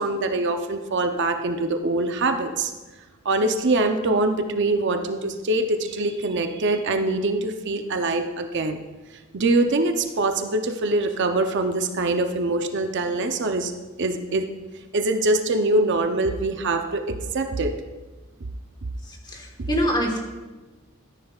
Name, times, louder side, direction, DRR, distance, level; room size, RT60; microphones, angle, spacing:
voice 1, 0.0-2.7 3.2-8.8 9.3-13.7 14.0-14.5 14.9-17.7 19.6-19.7, right 2 dB, 55° right, 6 dB, 0.6 m, -23 dB
voice 2, 19.3-20.2, equal, 20° left, 2 dB, 1.4 m, -24 dB
13.0 x 10.0 x 2.4 m, 1.2 s
head